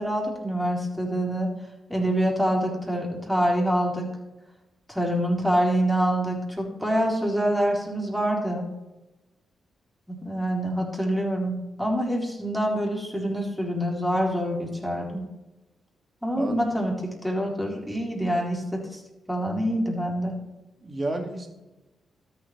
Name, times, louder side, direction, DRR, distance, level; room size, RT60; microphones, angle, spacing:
voice 1, 0.0-1.5 1.9-4.1 4.9-8.7 10.1-15.2 16.2-19.0 19.3-20.3, equal, ahead, -2 dB, 4.1 m, -26 dB
voice 2, 16.4-16.7 20.8-21.5, right 2 dB, 40° right, 4 dB, 2.2 m, -31 dB
13.0 x 7.8 x 3.3 m, 1.0 s
hypercardioid pair, 45°, 0 cm